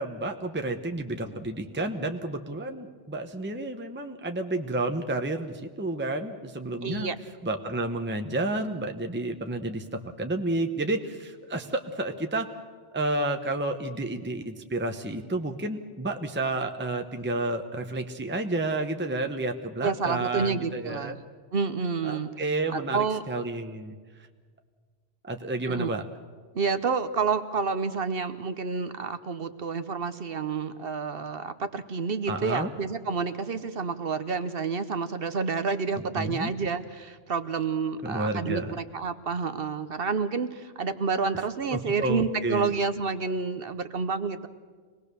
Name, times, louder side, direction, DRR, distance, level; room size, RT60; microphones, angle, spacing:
voice 1, 0.0-7.1 7.4-12.5 12.9-21.2 22.0-24.0 25.2-26.0 32.3-32.7 36.2-36.5 38.0-38.8 41.7-42.7, right 2 dB, 10° right, 5 dB, 1.0 m, -30 dB
voice 2, 6.8-7.2 19.8-21.2 21.5-22.3 22.7-23.2 25.7-25.9 26.5-44.5, right 5 dB, 60° right, 11 dB, 1.1 m, -29 dB
25.0 x 19.0 x 6.9 m, 1.5 s
omnidirectional pair, 1.1 m